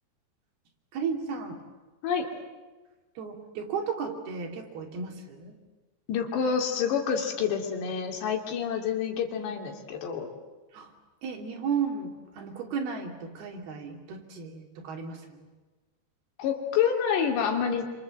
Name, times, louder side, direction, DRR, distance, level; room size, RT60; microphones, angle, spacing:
voice 1, 0.9-1.6 3.2-5.6 9.3-9.6 10.7-10.9 11.2-15.5, right 6 dB, 65° right, 3 dB, 4.5 m, -34 dB
voice 2, 6.1-10.3 16.4-17.9, left 7 dB, 80° left, 3 dB, 4.8 m, -28 dB
27.0 x 25.5 x 7.8 m, 1.2 s
omnidirectional pair, 4.9 m